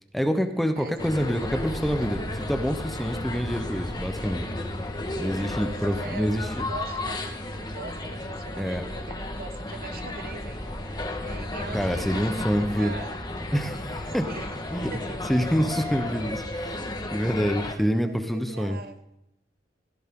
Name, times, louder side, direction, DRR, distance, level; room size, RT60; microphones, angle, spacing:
voice 1, 0.1-4.5 5.2-6.5 8.6-8.8 11.7-12.9 13.5-14.3 14.7-14.9 15.3-18.8, equal, ahead, 6 dB, 0.9 m, -27 dB
sound 1, 1.0-17.7, left 1 dB, 25° left, 1.5 m, -33 dB
voice 2, 5.5-13.1 14.2-15.4 15.8-16.1 17.8-19.0, right 3 dB, 55° right, 8 dB, 1.3 m, -43 dB
17.5 x 16.0 x 3.8 m, 0.84 s
head